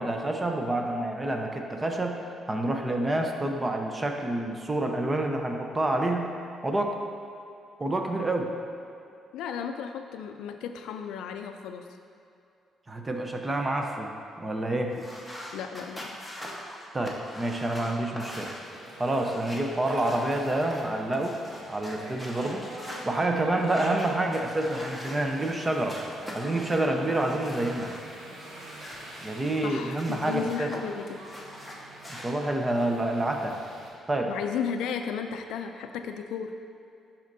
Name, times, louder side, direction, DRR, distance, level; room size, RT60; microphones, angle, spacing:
voice 1, 0.0-6.3 6.6-6.9 7.8-8.5 12.9-14.9 16.9-18.5 19.0-21.4 21.7-22.7 23.0-26.0 26.3-28.0 29.2-30.7 32.1-33.6 34.1-34.3, right 1 dB, 20° right, 3 dB, 0.7 m, -28 dB
voice 2, 9.3-11.9 15.5-16.2 23.6-23.7 29.6-31.2 34.3-36.6, left 7 dB, 90° left, 6 dB, 0.3 m, -34 dB
sound 1, 14.9-23.0 23.6-25.6 25.9-28.0 28.4-30.8 31.1-32.3, equal, ahead, 1.1 m, -43 dB
sound 2, 18.6-33.9, right 2 dB, 90° right, 1.1 m, -43 dB
11.5 x 4.3 x 2.7 m, 2.6 s
cardioid pair, 90°, 0 cm